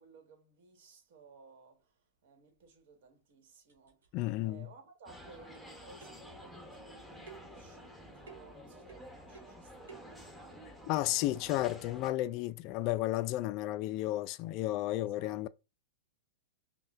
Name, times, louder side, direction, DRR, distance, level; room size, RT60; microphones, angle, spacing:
voice 1, 0.0-4.2 4.4-10.8 11.0-11.6 14.9-15.4, right 4 dB, 60° right, 1.4 m, -59 dB
sound 1, 2.7-2.8 3.3-3.4 3.7-4.6 5.5-5.7 6.0-6.3 7.3-7.6 8.3-8.6 8.9-9.6 9.9-10.2, right 6 dB, 75° right, 1.1 m, -55 dB
voice 2, 4.1-4.7 10.9-15.5, left 16 dB, 45° left, 0.3 m, -33 dB
sound 2, 5.1-12.1, equal, ahead, 0.9 m, -51 dB
5.4 x 2.2 x 2.4 m
hypercardioid pair, 110°, 0 cm